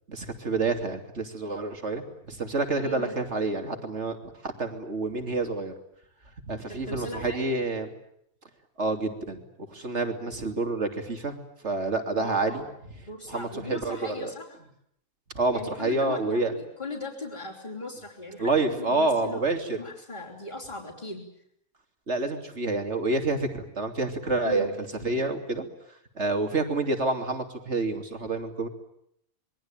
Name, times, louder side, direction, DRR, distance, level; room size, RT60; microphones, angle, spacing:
voice 1, 0.1-5.7 6.5-7.9 8.8-9.4 9.7-11.4 11.6-12.6 13.3-14.3 15.3-16.6 18.4-19.8 22.1-24.7 25.0-25.7 26.2-28.7, right 3 dB, 50° right, 6 dB, 3.3 m, -28 dB
voice 2, 2.8-3.2 6.7-7.5 12.2-12.6 13.0-14.6 15.5-19.4 19.8-21.2 24.4-24.7, left 1 dB, 30° left, -4 dB, 4.4 m, -38 dB
27.0 x 22.5 x 9.0 m, 0.73 s
omnidirectional pair, 1.5 m